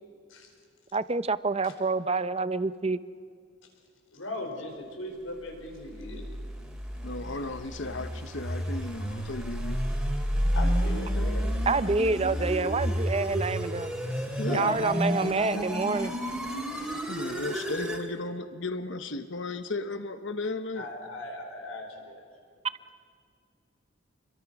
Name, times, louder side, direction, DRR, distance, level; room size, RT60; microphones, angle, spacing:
voice 1, 0.9-3.0 11.7-13.9 14.5-16.1, right 3 dB, 30° right, 14 dB, 0.7 m, -27 dB
voice 2, 4.1-6.2 10.6-12.0 12.6-12.7 14.4-16.0 20.7-22.2, left 1 dB, 80° left, 2 dB, 5.2 m, -38 dB
sound 1, 5.9-18.1, equal, 5° right, 2.9 m, -31 dB
voice 3, 7.0-9.8 14.4-14.8 17.1-20.9, left 2 dB, 60° left, 10 dB, 1.0 m, -35 dB
29.0 x 23.0 x 6.1 m, 2.1 s
head